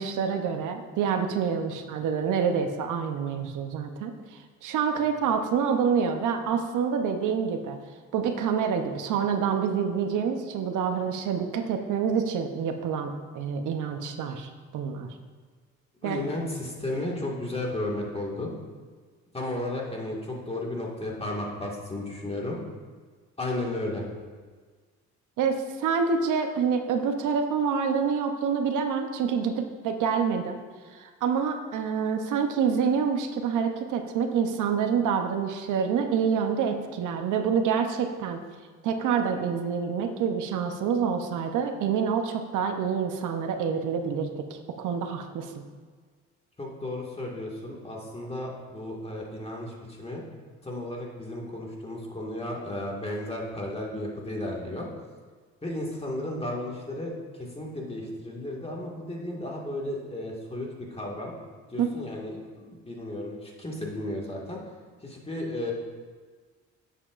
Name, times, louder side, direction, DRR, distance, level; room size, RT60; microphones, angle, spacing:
voice 1, 0.0-7.8 8.1-15.1 16.0-16.2 25.4-30.6 30.9-38.4 38.8-45.6 61.8-61.9, right 6 dB, 80° right, 6 dB, 0.8 m, -27 dB
voice 2, 16.0-18.5 19.3-22.6 23.4-24.1 46.6-50.2 50.6-54.9 55.6-61.3 61.7-64.6 65.0-65.7, left 1 dB, 20° left, -2 dB, 1.8 m, -34 dB
9.8 x 7.6 x 2.5 m, 1.5 s
cardioid pair, 90°, 30 cm